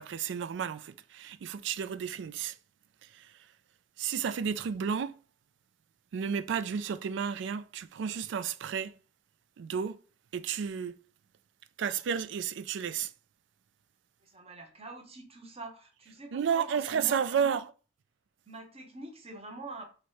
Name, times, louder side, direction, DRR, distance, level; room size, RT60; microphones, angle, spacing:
voice 1, 0.0-2.6 3.0-3.3 4.0-5.2 6.1-8.9 9.6-10.0 10.3-11.0 11.8-13.1 16.3-17.6, right 7 dB, 70° right, 0.3 m, -32 dB
voice 2, 14.2-17.6 18.5-19.8, right 2 dB, 30° right, 0.9 m, -45 dB
3.1 x 3.0 x 4.6 m
head